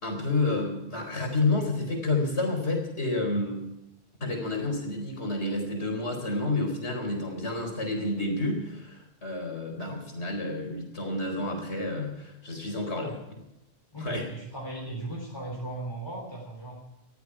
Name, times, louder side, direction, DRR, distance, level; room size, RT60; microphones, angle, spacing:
voice 1, 0.0-3.6 4.2-13.1 14.0-14.2, left 2 dB, 80° left, 2 dB, 4.7 m, -29 dB
voice 2, 12.9-13.2 13.9-16.8, right 2 dB, 25° left, -2 dB, 3.9 m, -37 dB
20.5 x 14.5 x 4.8 m, 0.88 s
omnidirectional pair, 1.1 m